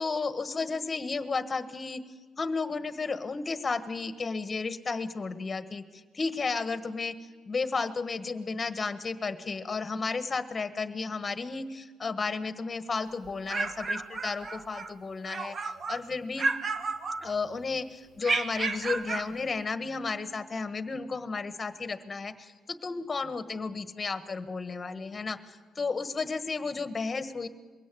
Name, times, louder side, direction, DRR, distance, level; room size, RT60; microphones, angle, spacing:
voice 1, 0.0-2.0 2.4-7.2 7.5-16.5 17.2-22.5 22.8-27.5, left 4 dB, 35° left, 11 dB, 1.5 m, -33 dB
sound 1, 13.2-14.9 15.2-16.0 16.4-17.6 18.2-19.3, right 3 dB, 45° right, 1.3 m, -32 dB
22.5 x 16.5 x 8.5 m, 1.5 s
cardioid pair, 90°, 0 cm